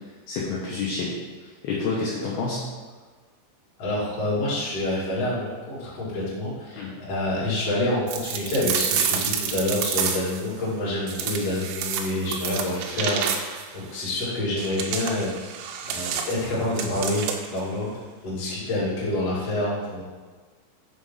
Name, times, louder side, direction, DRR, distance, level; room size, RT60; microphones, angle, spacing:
voice 1, 0.3-1.1 1.6-2.6 6.7-6.9, left 4 dB, 75° left, -4 dB, 2.3 m, -28 dB
voice 2, 3.8-15.3 15.9-17.9 18.2-20.0, left 1 dB, 45° left, -7 dB, 2.4 m, -27 dB
sound 1, 8.1-10.4 11.1-13.7 14.6-17.6, right 7 dB, 85° right, 2.6 m, -29 dB
7.4 x 3.4 x 5.4 m, 1.4 s
omnidirectional pair, 5.2 m